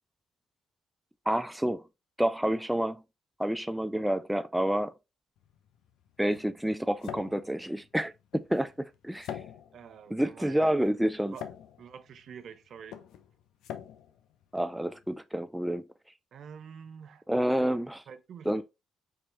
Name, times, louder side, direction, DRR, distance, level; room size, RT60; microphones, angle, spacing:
voice 1, 1.3-1.8 2.2-3.0 3.4-4.9 6.2-8.7 9.0-9.3 10.1-11.4 14.5-15.8 17.3-18.0 18.5-18.6, right 1 dB, 5° right, 0.3 m, -28 dB
sound 1, 5.4-15.2, left 9 dB, 85° left, 0.5 m, -46 dB
voice 2, 9.7-10.8 11.3-11.5 11.8-13.0 16.3-17.2 18.1-18.6, right 7 dB, 65° right, 0.6 m, -47 dB
4.8 x 3.1 x 3.0 m
cardioid pair, 90°, 0 cm